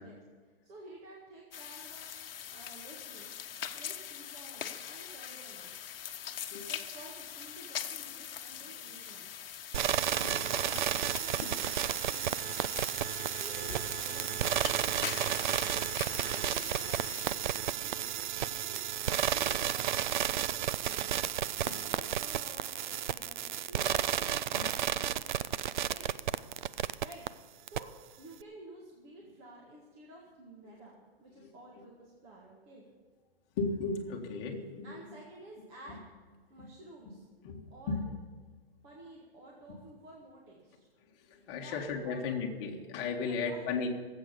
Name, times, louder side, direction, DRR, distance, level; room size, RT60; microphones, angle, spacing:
voice 1, 0.0-2.1 2.5-3.3 3.7-5.7 6.7-9.3 9.7-21.2 21.7-25.3 25.9-26.5 27.0-27.3 27.6-32.9 34.8-36.0 36.5-37.3 37.7-38.0 38.8-40.9 41.6-42.4 43.2-43.9, right 1 dB, 20° right, -2 dB, 1.7 m, -52 dB
sound 1, 1.5-17.3, left 9 dB, 65° left, 1.1 m, -43 dB
sound 2, 9.7-27.3 27.7-27.8, right 10 dB, 50° right, 0.5 m, -32 dB
voice 2, 21.5-21.8 24.5-24.7 31.4-31.5 31.8-31.9 33.6-35.0 37.4-38.0 41.3-43.9, left 4 dB, 30° left, 1 dB, 1.7 m, -36 dB
18.0 x 8.0 x 6.9 m, 1.5 s
hypercardioid pair, 160°, 30 cm